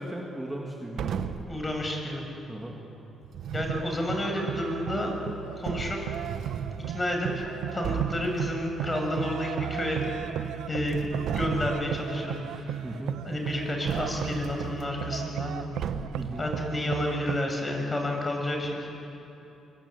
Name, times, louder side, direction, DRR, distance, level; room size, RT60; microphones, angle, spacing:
voice 1, 0.0-1.4 2.5-2.8 12.8-13.2 16.2-16.5, right 1 dB, 10° right, -1 dB, 2.9 m, -37 dB
sound 1, 1.0-1.6 3.2-3.9 5.1-5.2 5.6-6.9 7.4-7.5 7.8-8.3 9.9-10.5 10.8-11.9 13.9-14.8 15.8-16.3, right 7 dB, 70° right, 1.3 m, -34 dB
voice 2, 1.5-2.3 3.5-5.1 5.6-6.0 6.9-7.4 7.7-10.1 10.7-12.8 13.2-15.5 16.4-18.9, left 1 dB, 25° left, 2 dB, 7.0 m, -30 dB
sound 2, 3.5-17.4, right 11 dB, 85° right, 0.8 m, -36 dB
25.5 x 24.5 x 8.9 m, 3.0 s
cardioid pair, 90°, 0 cm